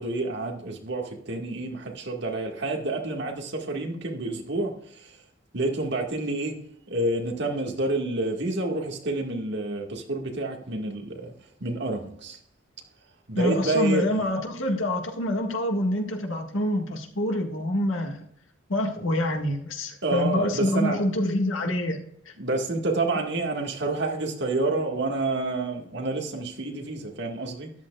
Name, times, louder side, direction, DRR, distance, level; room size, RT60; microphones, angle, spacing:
voice 1, 0.0-5.2 5.5-6.6 6.9-11.3 11.6-12.4 13.3-14.0 20.0-21.0 22.4-27.7, right 2 dB, 60° right, 1.9 m, -28 dB
voice 2, 13.4-18.2 18.7-22.3, left 1 dB, 85° left, 1.9 m, -26 dB
13.0 x 11.5 x 2.4 m
head